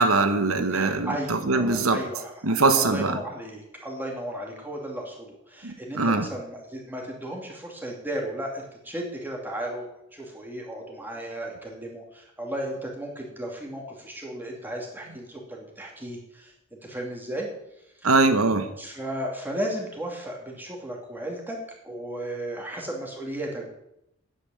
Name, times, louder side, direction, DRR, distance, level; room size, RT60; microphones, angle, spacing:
voice 1, 0.0-2.0 2.4-3.2 5.6-6.3 18.0-18.7, right 3 dB, 80° right, 8 dB, 1.2 m, -22 dB
voice 2, 0.6-17.5 18.0-18.1 18.8-21.6 21.8-23.7, right 1 dB, 10° right, -1 dB, 2.7 m, -35 dB
9.8 x 8.5 x 7.7 m, 0.82 s
head